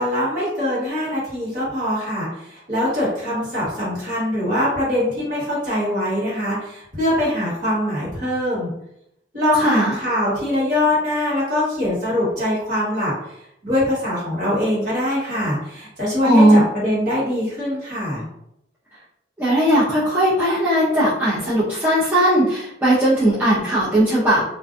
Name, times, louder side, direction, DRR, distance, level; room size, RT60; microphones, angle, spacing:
voice 1, 0.0-8.7 9.3-13.1 13.6-18.3, left 1 dB, 45° right, -7 dB, 1.4 m, -23 dB
voice 2, 9.5-10.0 16.2-16.6 19.4-24.4, right 1 dB, 10° right, -10 dB, 0.5 m, -17 dB
2.5 x 2.2 x 2.5 m, 0.79 s
head